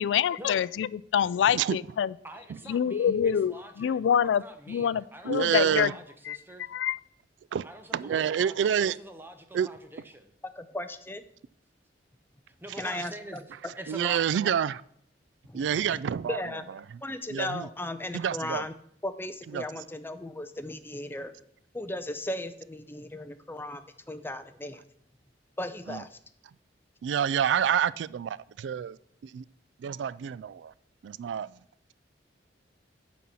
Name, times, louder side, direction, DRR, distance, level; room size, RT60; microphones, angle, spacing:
voice 1, 0.0-2.1 2.7-5.9 6.3-6.4 6.7-7.0, left 8 dB, 85° left, 0.3 m, -26 dB
voice 2, 2.2-6.7 7.6-10.3 12.5-14.2, right 1 dB, 10° right, 0.9 m, -46 dB
voice 3, 5.3-5.9 7.5-7.7 7.9-9.0 9.5-9.7 13.9-14.8 15.5-16.4 17.3-17.7 18.1-18.6 19.5-19.6 25.9-26.0 27.0-29.0 29.2-29.4 29.8-30.7 31.0-31.5, right 8 dB, 80° right, 0.3 m, -28 dB
voice 4, 10.6-11.2 12.8-13.1 15.5-16.0 16.3-16.7 17.0-18.7 19.0-21.3 21.7-23.8 24.1-24.8 25.6-26.2, left 1 dB, 10° left, 0.6 m, -36 dB
9.3 x 4.2 x 7.5 m
head